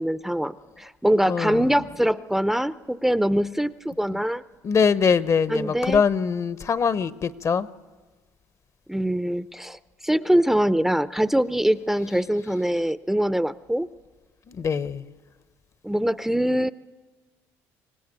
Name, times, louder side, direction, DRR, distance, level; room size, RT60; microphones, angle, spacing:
voice 1, 0.0-4.4 5.5-6.0 8.9-9.8 10.0-13.9 15.8-16.7, equal, 5° right, 14 dB, 0.6 m, -23 dB
voice 2, 1.3-1.7 4.1-4.2 4.6-7.7 14.5-15.1, left 6 dB, 40° left, 15 dB, 0.9 m, -23 dB
25.0 x 17.5 x 8.9 m, 1.4 s
supercardioid pair, 70°, 8 cm